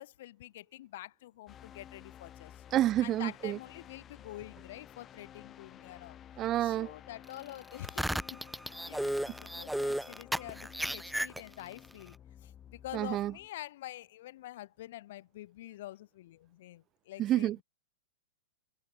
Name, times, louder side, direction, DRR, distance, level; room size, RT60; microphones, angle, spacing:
voice 1, 0.0-2.6 3.0-6.2 6.6-8.4 8.9-12.2 12.4-17.6, left 15 dB, 60° left, 2.6 m, -47 dB
sound 1, 1.5-13.5, left 10 dB, 20° left, 3.2 m, -53 dB
voice 2, 2.7-3.6 6.4-6.9 12.9-13.3 17.2-17.6, right 13 dB, 25° right, 0.7 m, -29 dB
sound 2, 7.7-11.8, right 1 dB, ahead, 1.0 m, -34 dB
supercardioid pair, 155°, 0 cm